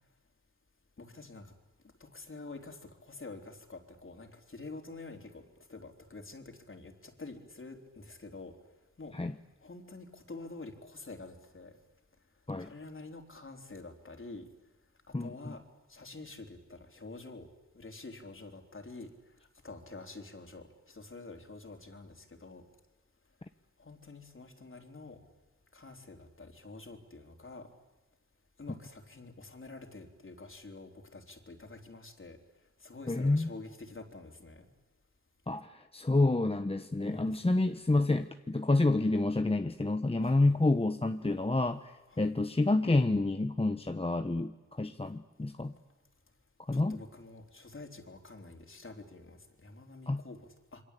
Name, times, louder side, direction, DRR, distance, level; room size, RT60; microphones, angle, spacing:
voice 1, 1.0-1.5 2.0-8.6 9.0-9.2 9.6-11.8 12.6-14.5 15.1-15.6 15.9-17.5 17.7-19.1 19.6-22.6 23.8-25.2 25.7-27.7 28.6-32.4 32.8-34.7 37.0-37.4 40.2-40.6 42.1-42.3 46.7-50.8, left 3 dB, 40° left, 4 dB, 3.7 m, -48 dB
voice 2, 15.1-15.5 33.1-33.5 35.5-45.7 46.7-47.0 50.1-50.2, left 2 dB, 20° left, 8 dB, 1.1 m, -29 dB
27.5 x 24.0 x 8.4 m, 1.1 s
wide cardioid pair, 70°, 31 cm